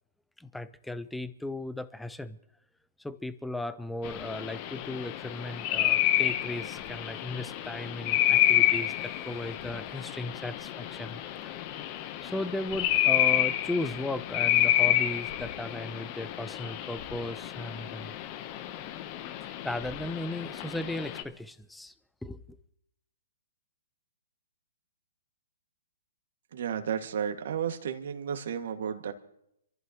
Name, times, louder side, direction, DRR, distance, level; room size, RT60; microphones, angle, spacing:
voice 1, 0.4-2.4 3.0-11.6 12.2-18.1 19.6-21.9 22.2-22.6, left 2 dB, 5° left, 14 dB, 0.6 m, -36 dB
sound 1, 4.0-21.2, left 13 dB, 35° left, 0.9 m, -29 dB
voice 2, 26.5-29.1, right 8 dB, 65° right, 5 dB, 2.0 m, -32 dB
26.5 x 14.5 x 3.0 m, 0.77 s
hypercardioid pair, 145°, 0 cm